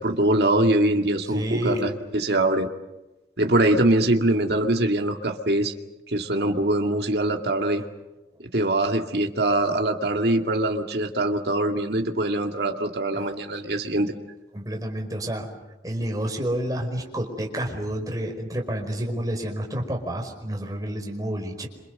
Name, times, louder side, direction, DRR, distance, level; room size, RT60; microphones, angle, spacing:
voice 1, 0.0-2.7 3.4-5.7 6.1-7.8 8.5-14.1, right 1 dB, 60° right, 3 dB, 2.4 m, -23 dB
voice 2, 1.3-1.9 13.1-13.2 14.5-15.5 15.8-21.7, right 1 dB, 20° right, 1 dB, 5.1 m, -29 dB
27.5 x 26.5 x 6.8 m, 1.0 s
head